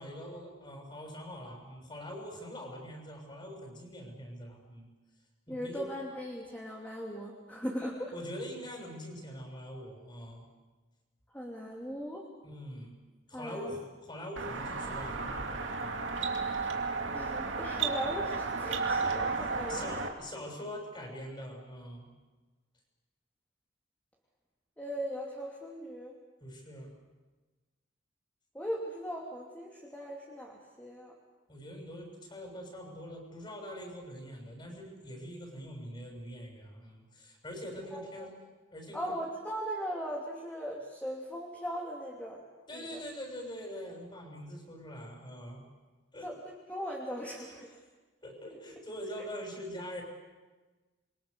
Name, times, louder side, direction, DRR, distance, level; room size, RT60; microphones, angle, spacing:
voice 1, 0.0-4.9 5.5-5.9 7.4-7.6 8.1-10.5 12.4-13.0 13.3-16.1 19.4-22.1 26.4-27.0 31.5-38.3 38.7-39.1 42.7-45.6 46.1-46.3 47.5-47.6 48.2-50.0, equal, 25° left, 2 dB, 6.8 m, -43 dB
voice 2, 5.5-8.1 11.3-12.3 13.3-13.7 16.2-16.7 17.1-20.0 24.8-26.2 28.5-31.1 37.9-38.3 38.9-42.4 42.7-43.0 46.2-47.7, equal, 10° left, -2 dB, 2.7 m, -39 dB
sound 1, 14.4-20.1, right 4 dB, 90° right, 2.4 m, -33 dB
28.0 x 23.0 x 6.8 m, 1.2 s
head